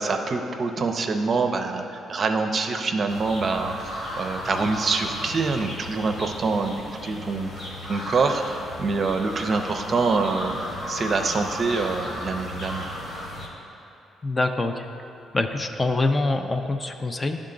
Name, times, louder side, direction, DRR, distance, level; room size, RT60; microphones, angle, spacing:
voice 1, 0.0-10.6 10.9-12.9, right 4 dB, 45° right, 5 dB, 0.5 m, -25 dB
sound 1, 3.1-13.5, left 1 dB, 50° left, 1.4 m, -35 dB
voice 2, 14.2-14.8 15.3-17.4, left 2 dB, 25° left, 6 dB, 0.4 m, -25 dB
11.0 x 3.7 x 3.8 m, 2.9 s
cardioid pair, 90°, 0 cm